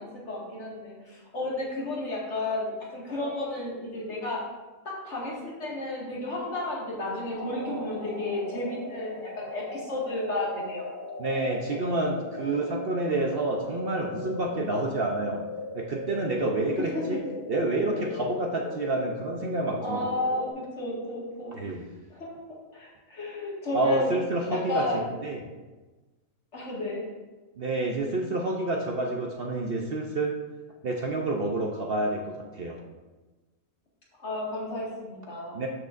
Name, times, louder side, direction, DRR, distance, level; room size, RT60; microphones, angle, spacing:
voice 1, 0.0-4.4 4.8-10.9 16.8-17.2 19.8-21.6 22.1-24.1 24.5-25.1 26.5-27.0 34.2-35.6, left 2 dB, 55° left, -5 dB, 2.3 m, -32 dB
sound 1, 7.3-20.5, left 2 dB, 40° left, 1.0 m, -39 dB
voice 2, 11.2-15.4 15.7-17.2 17.5-20.1 21.5-21.9 23.7-25.4 27.6-30.4 30.8-32.8 35.5-35.7, right 2 dB, 50° right, 1 dB, 0.8 m, -28 dB
12.0 x 6.4 x 2.6 m, 1.2 s
omnidirectional pair, 1.5 m